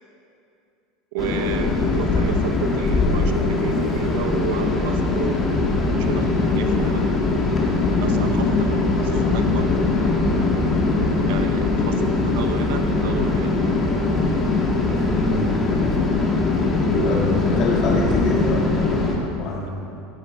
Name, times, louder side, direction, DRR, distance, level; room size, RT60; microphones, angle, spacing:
voice 1, 1.1-5.4 5.9-7.0 8.0-9.7 11.3-13.5, right 9 dB, 65° right, 7 dB, 0.7 m, -32 dB
sound 1, 1.2-19.2, left 3 dB, 15° left, 1.4 m, -21 dB
voice 2, 15.0-15.5 16.9-17.2 17.6-19.7, left 2 dB, 35° left, -3 dB, 2.5 m, -26 dB
16.0 x 8.8 x 5.2 m, 2.5 s
supercardioid pair, 180°, 0 cm